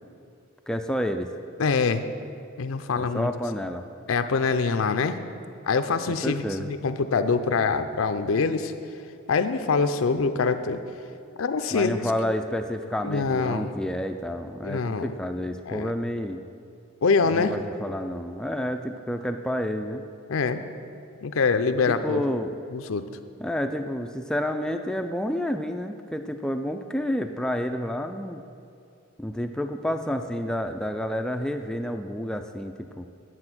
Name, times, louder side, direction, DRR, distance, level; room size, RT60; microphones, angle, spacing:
voice 1, 0.7-1.3 3.0-3.9 6.1-6.7 11.7-16.4 17.3-20.0 21.9-22.5 23.4-28.4 29.2-33.1, equal, 5° left, 6 dB, 0.3 m, -29 dB
voice 2, 1.6-2.2 2.6-3.3 4.1-5.2 5.7-8.7 9.3-10.8 11.4-12.0 13.0-13.7 14.6-15.1 15.7-15.9 17.0-17.5 20.3-20.6 21.2-22.2 22.7-23.0, left 4 dB, 75° left, 9 dB, 0.5 m, -24 dB
9.8 x 7.6 x 6.0 m, 2.5 s
head